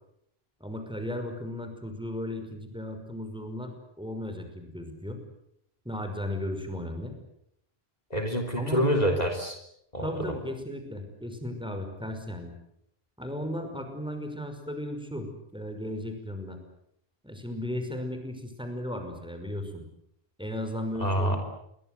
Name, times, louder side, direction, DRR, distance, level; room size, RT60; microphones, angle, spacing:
voice 1, 0.6-5.2 5.8-7.2 8.6-8.8 10.0-12.5 13.2-16.6 17.2-19.9 20.4-21.4, left 1 dB, 5° right, 6 dB, 5.6 m, -35 dB
voice 2, 8.1-9.6 9.9-10.1 21.0-21.4, equal, 40° left, 5 dB, 3.6 m, -26 dB
29.0 x 23.0 x 8.2 m, 0.76 s
omnidirectional pair, 1.1 m